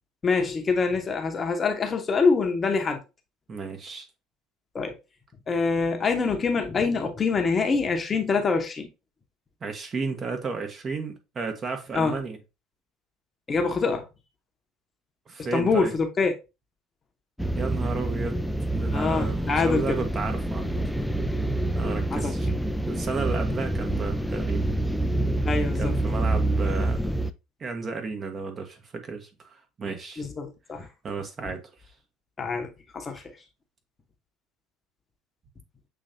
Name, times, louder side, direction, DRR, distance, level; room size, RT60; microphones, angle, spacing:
voice 1, 0.2-3.0 4.7-4.9 5.5-8.9 11.9-12.2 13.5-14.1 15.5-16.3 18.9-20.0 22.1-22.3 25.4-25.9 30.2-30.9 32.4-33.2, left 4 dB, 30° left, 0.9 m, -25 dB
voice 2, 3.5-4.1 9.6-12.4 15.3-15.9 17.6-18.4 18.7-21.1 21.7-22.5 22.9-24.7 25.8-27.0 27.6-29.3 29.8-30.2 31.0-31.6, right 4 dB, 30° right, 0.9 m, -33 dB
sound 1, 17.4-27.3, right 1 dB, ahead, 0.4 m, -27 dB
6.8 x 3.1 x 2.6 m
figure-of-eight pair, 60°, 0 cm